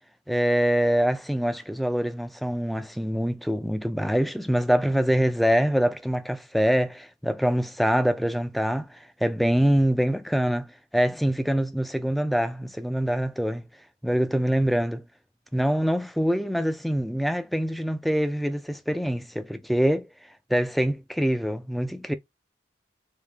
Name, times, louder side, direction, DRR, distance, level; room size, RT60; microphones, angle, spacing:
voice 1, 0.3-13.6 14.0-15.0 15.5-20.1 20.5-22.1, equal, ahead, 0.3 m, -24 dB
3.6 x 2.6 x 3.3 m
head